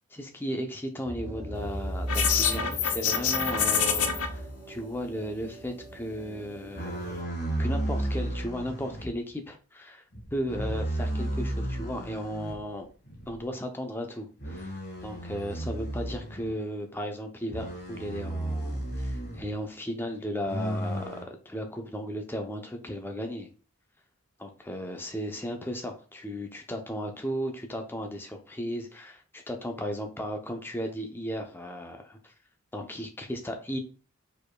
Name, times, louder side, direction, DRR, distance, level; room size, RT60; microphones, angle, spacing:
voice 1, 0.1-7.3 7.6-10.0 10.3-12.9 13.3-23.5 24.4-32.3 32.7-33.8, equal, 10° left, 4 dB, 0.6 m, -35 dB
sound 1, 1.0-7.3, right 1 dB, 30° right, 0.9 m, -37 dB
sound 2, 2.1-4.3, left 7 dB, 80° left, 0.7 m, -26 dB
sound 3, 6.8-9.1 10.1-12.6 13.1-13.3 14.4-16.5 17.5-19.5 20.4-21.2, right 1 dB, 45° left, 1.7 m, -33 dB
5.1 x 4.3 x 2.3 m, 0.38 s
head